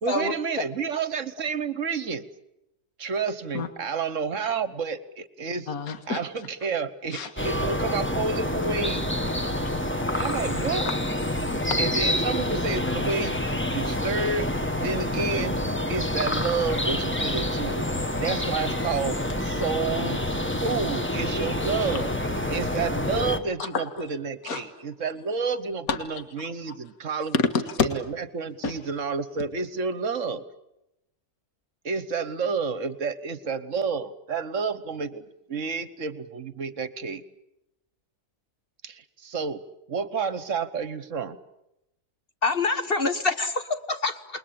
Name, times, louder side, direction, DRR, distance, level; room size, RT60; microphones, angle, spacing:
voice 1, 0.0-2.2 3.0-5.7 6.1-9.2 10.1-10.9 11.8-14.5 14.7-15.6 15.9-17.8 18.1-19.2 19.4-20.2 20.6-22.1 22.5-27.4 27.8-30.4 31.8-37.2 38.8-39.6 39.9-41.4, right 5 dB, 55° right, 1.4 m, -30 dB
voice 2, 5.7-6.2 7.1-7.3 10.0-10.1 10.8-11.0 11.4-11.8 23.6-24.1 24.4-24.6 25.9-26.2 27.3-27.9 28.6-28.7, left 5 dB, 65° left, 2.1 m, -28 dB
sound 1, 7.4-23.4, left 1 dB, 10° left, 1.3 m, -27 dB
voice 3, 42.4-44.4, left 3 dB, 40° left, 1.3 m, -26 dB
28.5 x 21.5 x 8.7 m
omnidirectional pair, 1.7 m